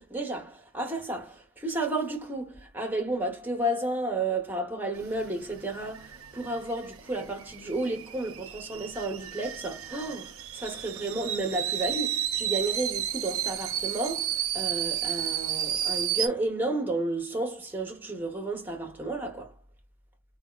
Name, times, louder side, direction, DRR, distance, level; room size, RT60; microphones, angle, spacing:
voice 1, 0.0-19.5, right 2 dB, 10° right, 0.8 m, -32 dB
sound 1, 4.9-16.3, right 10 dB, 80° right, 0.5 m, -33 dB
3.4 x 2.2 x 2.3 m
head